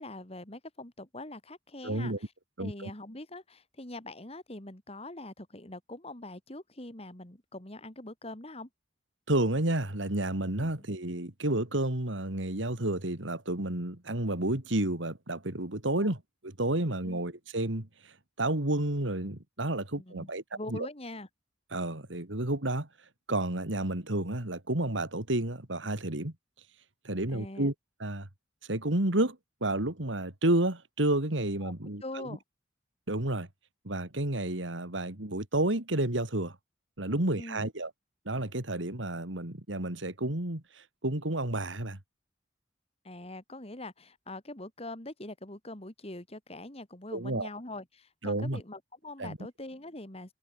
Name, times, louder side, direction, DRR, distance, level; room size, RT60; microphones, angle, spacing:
voice 1, 0.0-2.3 2.6-8.7 10.6-10.7 16.0-16.1 17.0-17.2 20.0-21.3 27.3-27.7 31.6-31.7 32.0-32.4 37.4-37.7 43.0-50.3, left 2 dB, 30° left, 2.8 m, -43 dB
voice 2, 1.8-2.2 2.6-2.9 9.3-17.9 18.4-20.4 20.7-20.9 21.7-22.9 23.3-26.3 27.0-27.7 28.0-28.3 28.7-32.4 33.1-33.5 33.8-36.6 37.0-37.9 38.2-40.6 41.0-42.0 47.1-47.5 48.2-48.6 49.2-49.4, right 1 dB, 80° right, 3.0 m, -30 dB
head